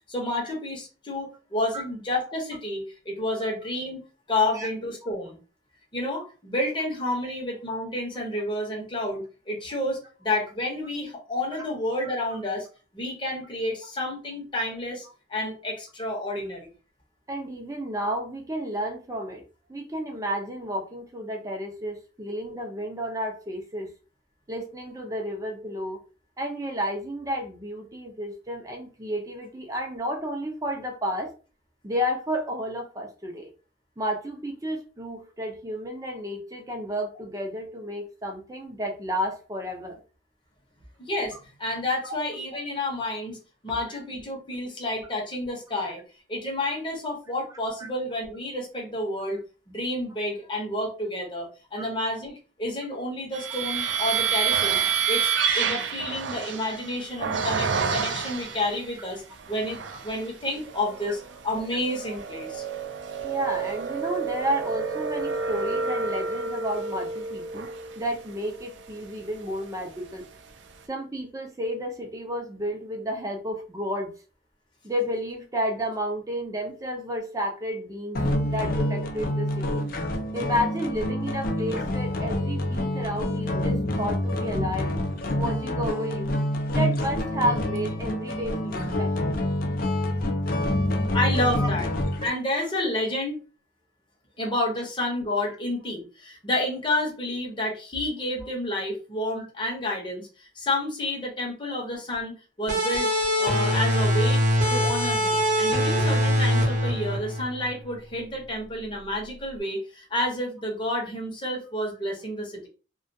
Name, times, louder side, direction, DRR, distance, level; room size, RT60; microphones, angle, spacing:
voice 1, 0.1-4.0 4.3-5.4 5.9-12.7 12.9-16.7 41.0-43.4 43.6-46.0 46.3-49.4 49.7-54.8 55.1-59.2 59.5-62.6 91.1-91.9 92.2-93.4 94.4-103.1 103.4-104.4 104.7-112.7, left 1 dB, 25° left, -1 dB, 0.8 m, -30 dB
voice 2, 17.3-19.4 19.7-23.9 24.5-26.0 26.4-31.3 31.8-33.5 34.0-40.0 43.9-44.0 51.8-51.9 62.0-62.2 63.2-67.7 68.0-70.2 70.9-74.1 74.8-79.9 80.3-84.9 85.4-86.3 86.7-89.4 91.6-91.7 98.4-98.5 99.3-99.5, equal, 20° right, 2 dB, 0.5 m, -31 dB
sound 1, 53.3-58.8 59.4-60.2 60.7-69.9, right 6 dB, 75° right, 0.4 m, -29 dB
sound 2, 78.1-92.3, left 1 dB, 50° left, 0.4 m, -27 dB
sound 3, 102.7-108.0, equal, 40° right, 0.9 m, -23 dB
2.3 x 2.2 x 2.6 m, 0.35 s
head